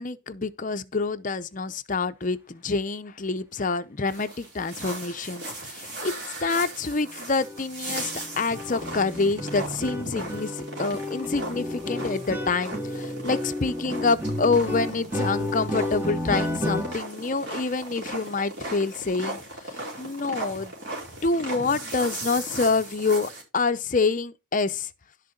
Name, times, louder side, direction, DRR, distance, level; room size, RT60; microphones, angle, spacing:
voice 1, 0.0-6.1 6.4-20.7 21.2-24.9, left 4 dB, 40° left, 0.6 m, -27 dB
sound 1, 4.1-23.4, right 1 dB, 50° right, 5.1 m, -37 dB
sound 2, 7.0-7.1 7.4-7.6 7.9-16.9, left 1 dB, 10° right, 1.2 m, -31 dB
11.5 x 6.7 x 3.8 m
head